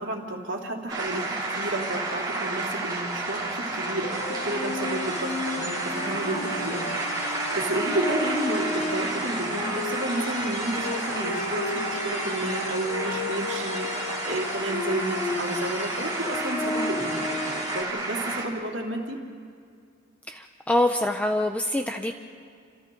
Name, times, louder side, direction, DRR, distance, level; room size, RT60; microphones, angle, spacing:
voice 1, 0.0-19.2, right 1 dB, 70° right, -1 dB, 3.1 m, -32 dB
sound 1, 0.9-18.5, right 2 dB, 20° right, 3.2 m, -31 dB
sound 2, 4.1-17.8, left 3 dB, 35° left, 1.2 m, -33 dB
voice 2, 20.3-22.1, left 1 dB, 5° left, 4 dB, 0.7 m, -25 dB
30.0 x 26.5 x 3.9 m, 2.2 s
head